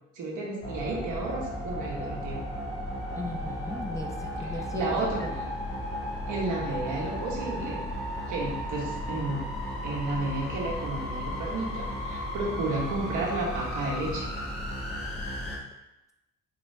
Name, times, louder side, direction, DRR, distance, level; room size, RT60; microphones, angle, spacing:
voice 1, 0.1-2.5 4.7-5.2 6.3-7.9 8.3-9.5 9.8-14.3, right 2 dB, 80° right, -3 dB, 1.2 m, -32 dB
sound 1, 0.6-15.6, left 1 dB, 50° left, 1.4 m, -34 dB
voice 2, 3.1-4.9 5.2-5.4, left 2 dB, 10° left, 1 dB, 0.4 m, -37 dB
4.4 x 2.7 x 3.2 m, 0.94 s
cardioid pair, 90°, 30 cm